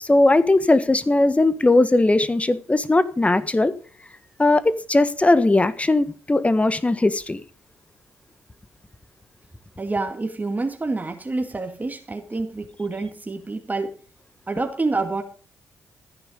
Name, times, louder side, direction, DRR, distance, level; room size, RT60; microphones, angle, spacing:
voice 1, 0.0-3.7 4.4-7.4, left 2 dB, 20° left, 1.5 m, -19 dB
voice 2, 9.8-13.9 14.5-15.2, right 3 dB, 25° right, 2.2 m, -27 dB
14.5 x 10.0 x 5.2 m
hypercardioid pair, 45°, 6 cm